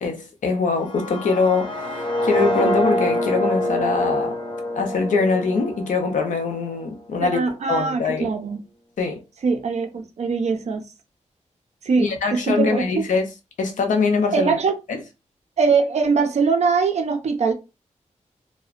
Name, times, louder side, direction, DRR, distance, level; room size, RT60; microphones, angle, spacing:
voice 1, 0.0-4.4 4.8-7.4 7.7-8.3 9.0-9.2 12.0-13.3 13.6-14.5 14.9-15.0, left 4 dB, 85° left, 0.6 m, -23 dB
sound 1, 0.8-6.8, equal, 40° left, 0.5 m, -25 dB
voice 2, 7.1-8.6 9.4-10.8 11.8-13.0 14.3-14.7 15.6-17.5, right 5 dB, 60° right, 0.5 m, -22 dB
2.7 x 2.1 x 2.4 m
wide cardioid pair, 140°, 13 cm